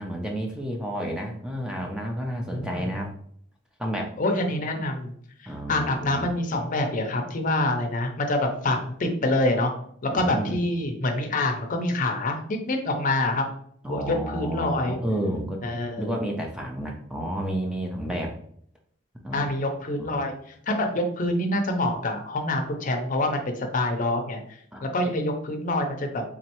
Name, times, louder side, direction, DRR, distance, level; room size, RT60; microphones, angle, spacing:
voice 1, 0.0-3.1 3.8-4.1 5.5-6.3 10.1-10.6 13.8-15.6 16.0-18.4 19.2-19.5 20.0-20.2 24.7-25.0, right 1 dB, 5° right, 1 dB, 0.4 m, -31 dB
voice 2, 2.4-2.9 4.2-5.1 5.7-9.7 10.0-13.5 13.9-15.0 15.6-16.2 19.3-20.3 20.7-24.4 24.8-26.2, left 1 dB, 40° left, 4 dB, 0.6 m, -26 dB
3.7 x 3.1 x 2.9 m, 0.63 s
head